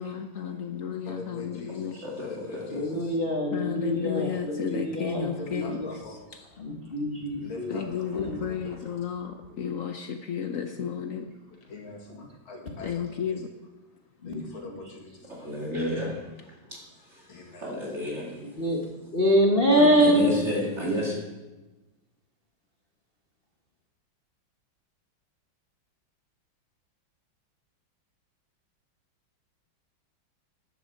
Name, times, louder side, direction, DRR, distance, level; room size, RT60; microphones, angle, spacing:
voice 1, 0.0-2.0 3.5-5.8 7.7-11.3 12.8-13.5, left 8 dB, 70° left, 6 dB, 0.8 m, -32 dB
voice 2, 1.1-3.2 4.1-4.2 4.7-4.8 5.4-6.5 7.4-8.2 8.5-8.6 11.7-13.1 14.2-15.5 17.3-17.7 19.7-20.0, left 3 dB, 85° left, 1 dB, 2.8 m, -44 dB
voice 3, 2.0-3.0 15.3-18.4 19.8-21.2, left 1 dB, 35° right, -3 dB, 2.3 m, -32 dB
voice 4, 2.7-5.9 6.6-7.8 8.1-8.4 14.2-14.8 18.4-18.9 19.1-20.3, equal, 35° left, 0 dB, 1.1 m, -25 dB
13.5 x 10.0 x 4.4 m, 1.1 s
omnidirectional pair, 2.2 m